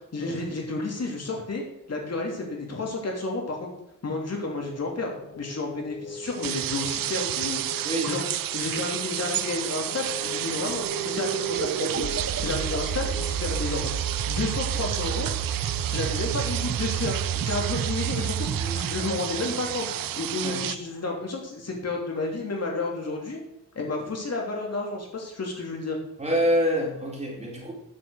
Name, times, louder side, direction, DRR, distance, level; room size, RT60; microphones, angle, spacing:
voice 1, 0.1-1.6 1.9-3.7 4.0-8.2 8.5-12.1 12.4-13.9 14.3-15.3 15.9-19.9 20.2-23.4 23.7-26.0, left 3 dB, 50° left, 0 dB, 3.1 m, -31 dB
sound 1, 4.3-21.2, left 4 dB, 75° left, 1.5 m, -43 dB
sound 2, 6.2-20.8, right 12 dB, 85° right, 0.6 m, -31 dB
sound 3, 10.8-20.2, right 8 dB, 50° right, 0.8 m, -31 dB
voice 2, 26.2-27.7, equal, 20° right, -3 dB, 3.9 m, -26 dB
10.0 x 6.2 x 6.5 m, 0.86 s
cardioid pair, 100°, 33 cm